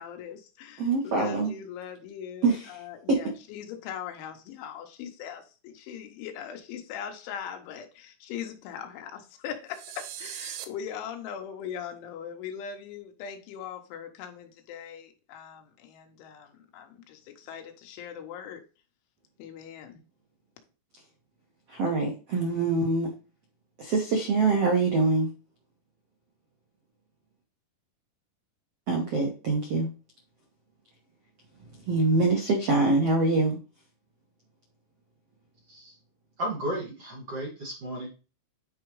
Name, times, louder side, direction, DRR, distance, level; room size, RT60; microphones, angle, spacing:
voice 1, 0.0-2.5 2.8-18.6 19.4-20.0, left 8 dB, 80° left, 3.5 m, -40 dB
voice 2, 0.8-1.5 2.4-3.2 21.0-21.1 21.7-23.1 23.8-25.3 28.9-29.9 31.6-33.6, right 3 dB, 70° right, 1.4 m, -25 dB
sound 1, 9.7-10.7, right 11 dB, 90° right, 2.1 m, -39 dB
voice 3, 36.4-38.1, equal, 45° right, 2.3 m, -34 dB
10.0 x 4.9 x 3.1 m
omnidirectional pair, 5.5 m